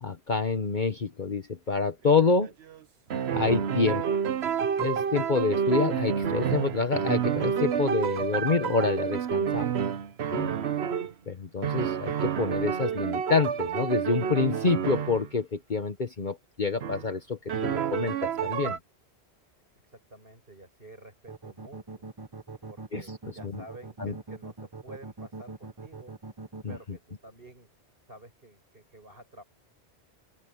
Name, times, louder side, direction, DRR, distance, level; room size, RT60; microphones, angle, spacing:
voice 1, 0.0-2.5 3.3-4.0 4.8-9.7 10.3-10.5 11.3-18.8 22.9-23.0 23.5-23.6 24.0-24.1 26.6-26.7, left 4 dB, 45° left, 1.3 m, -27 dB
sound 1, 2.1-2.8 3.1-11.1 11.6-15.3 16.8-17.0 17.5-18.8, right 8 dB, 75° right, 1.1 m, -29 dB
voice 2, 19.8-22.1 22.7-26.2 26.7-27.7 28.0-29.4, right 2 dB, 55° right, 6.9 m, -50 dB
sound 2, 21.3-26.8, right 3 dB, 25° right, 0.9 m, -41 dB
open air
omnidirectional pair, 1.1 m